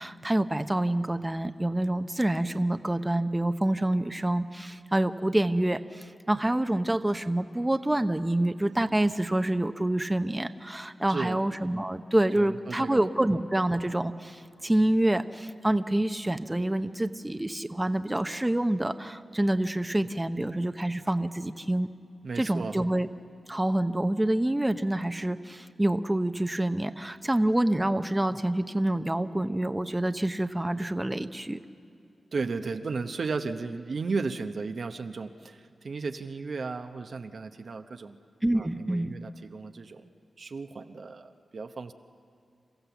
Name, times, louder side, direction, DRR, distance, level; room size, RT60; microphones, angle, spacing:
voice 1, 0.0-21.9 22.4-23.1 23.5-31.6 38.4-39.1, right 1 dB, 20° right, 9 dB, 0.8 m, -27 dB
voice 2, 11.1-11.4 12.3-13.0 22.2-22.8 32.3-38.2 38.5-40.0 40.4-41.9, right 4 dB, 65° right, 7 dB, 0.9 m, -34 dB
28.5 x 15.0 x 7.1 m, 2.5 s
cardioid pair, 45°, 0 cm